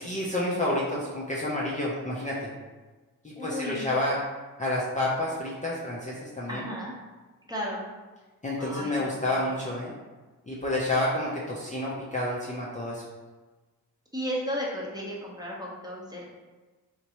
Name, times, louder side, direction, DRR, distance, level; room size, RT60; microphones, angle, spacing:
voice 1, 0.0-2.5 3.2-4.2 4.6-6.6 8.4-9.9 10.5-13.0, left 1 dB, 20° left, -6 dB, 0.6 m, -29 dB
voice 2, 3.4-3.8 6.5-6.9 7.4-7.8 8.6-8.9 9.2-9.5 14.1-16.2, equal, 10° right, -4 dB, 0.9 m, -34 dB
3.0 x 2.5 x 2.9 m, 1.3 s
supercardioid pair, 40°, 42 cm